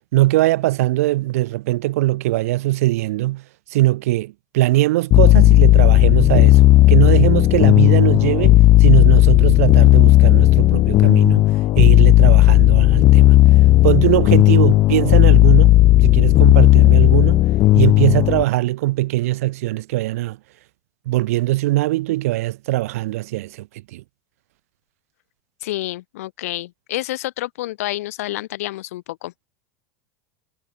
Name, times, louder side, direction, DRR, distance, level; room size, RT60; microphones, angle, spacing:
voice 1, 0.1-3.4 3.7-6.6 6.9-11.4 11.8-13.4 13.8-17.4 17.7-20.4 21.1-24.0, right 17 dB, 75° right, 4.7 m, -20 dB
sound 1, 5.1-18.4, left 16 dB, 45° left, 1.0 m, -12 dB
voice 2, 25.6-29.3, left 16 dB, 80° left, 3.9 m, -29 dB
supercardioid pair, 115°, 8 cm